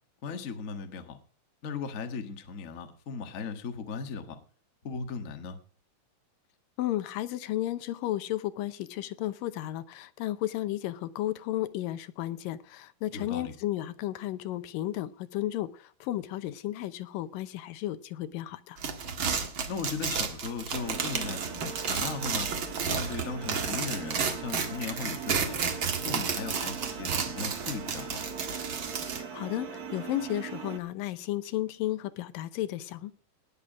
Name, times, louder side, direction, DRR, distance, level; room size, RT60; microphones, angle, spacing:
voice 1, 0.2-1.2 1.6-4.4 4.8-5.6 13.1-13.5 19.7-22.5 22.8-25.6 26.0-28.2, left 5 dB, 60° left, 6 dB, 0.8 m, -37 dB
voice 2, 6.8-18.8 29.3-33.1, left 14 dB, 80° left, 13 dB, 2.4 m, -33 dB
sound 1, 18.8-29.2, right 6 dB, 45° right, 1.8 m, -32 dB
sound 2, 20.7-30.8, right 6 dB, 80° right, 0.8 m, -41 dB
19.0 x 7.3 x 5.1 m, 0.43 s
omnidirectional pair, 4.1 m